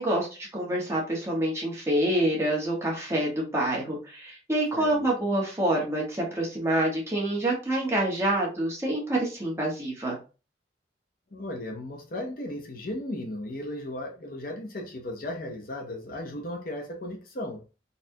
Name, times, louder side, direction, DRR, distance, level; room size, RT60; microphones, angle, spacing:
voice 1, 0.0-10.2, right 1 dB, 15° right, 1.1 m, -27 dB
voice 2, 4.7-5.1 11.3-17.6, left 1 dB, 50° left, 0.6 m, -36 dB
4.1 x 2.4 x 2.7 m
head